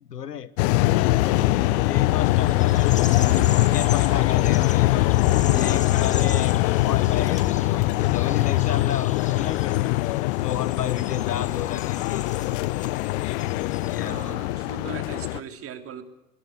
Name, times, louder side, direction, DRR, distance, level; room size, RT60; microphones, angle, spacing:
voice 1, 0.0-3.3 3.7-5.1 5.5-9.9 10.4-12.4 13.8-14.3, left 9 dB, 80° left, 18 dB, 1.2 m, -33 dB
sound 1, 0.6-15.4, left 18 dB, 45° left, 0.9 m, -22 dB
sound 2, 1.0-6.5, right 2 dB, 10° right, 2.1 m, -42 dB
sound 3, 2.2-14.3, left 5 dB, 15° left, 2.4 m, -40 dB
voice 2, 14.0-16.0, right 8 dB, 30° right, 7 dB, 3.4 m, -39 dB
21.5 x 18.0 x 9.6 m, 0.96 s
figure-of-eight pair, 95°, 47 cm